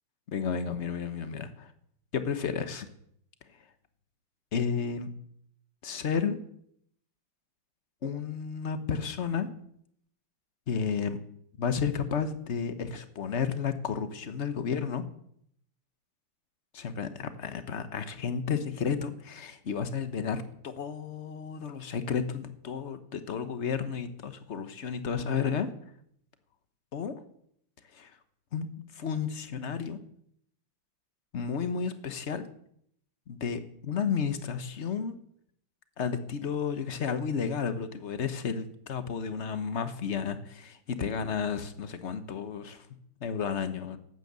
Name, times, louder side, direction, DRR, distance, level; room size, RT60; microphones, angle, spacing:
voice 1, 0.3-1.7 2.1-2.9 4.5-5.1 5.8-6.4 8.0-9.5 10.7-11.2 11.6-15.0 16.7-25.7 26.9-27.1 27.9-28.1 28.5-28.7 28.9-30.0 31.3-32.5 33.3-35.1 36.0-42.8 43.2-44.0, left 6 dB, 45° left, 10 dB, 1.0 m, -32 dB
12.5 x 9.4 x 8.1 m, 0.70 s
omnidirectional pair, 2.3 m